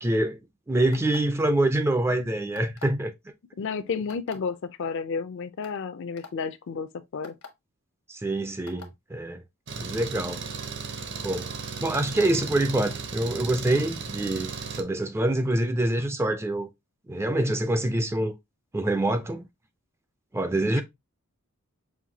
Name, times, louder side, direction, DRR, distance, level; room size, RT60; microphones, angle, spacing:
voice 1, 0.0-0.4 0.7-3.1 8.1-9.4 9.8-10.4 11.2-11.5 11.8-16.7 17.1-18.3 18.7-19.4 20.3-20.8, right 1 dB, 10° right, 0.3 m, -25 dB
sound 1, 0.9-1.4 2.5-3.0 4.1-4.4 5.1-5.2 5.6-5.8 6.2-6.3 7.2-7.5 8.7-8.9, left 4 dB, 80° left, 1.0 m, -44 dB
voice 2, 3.6-7.4 20.7-20.8, left 5 dB, 55° left, 0.4 m, -32 dB
Engine, 9.7-14.8, right 4 dB, 55° right, 0.7 m, -35 dB
5.6 x 2.6 x 2.7 m
head